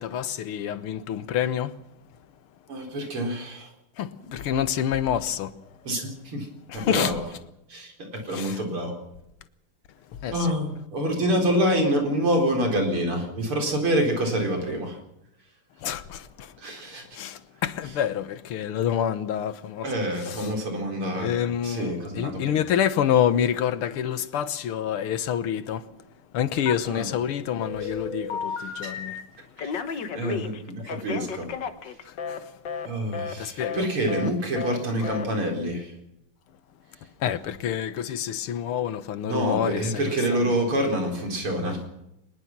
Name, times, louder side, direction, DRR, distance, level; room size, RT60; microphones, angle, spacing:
voice 1, 0.0-1.8 4.0-5.5 6.7-7.2 8.2-8.6 10.2-10.5 15.8-16.5 17.1-19.9 20.2-20.5 21.2-25.9 26.3-29.2 32.1-32.5 33.4-33.9 37.2-40.6, left 9 dB, 85° left, 2.0 m, -27 dB
voice 2, 2.7-3.7 5.9-6.5 6.7-7.2 7.7-8.9 10.3-15.0 16.6-17.0 19.8-21.3 21.6-22.5 26.9-27.1 28.8-28.9 29.6-31.5 32.9-35.9 39.2-41.8, equal, 85° right, 5.2 m, -27 dB
Telephone, 26.7-27.3 27.6-29.2 29.6-32.4 32.7-32.9 33.1-33.3 33.6-33.8 34.1-34.3 34.6-34.8 35.0-35.3, left 6 dB, 60° left, 1.9 m, -33 dB
23.0 x 20.5 x 6.0 m
omnidirectional pair, 2.3 m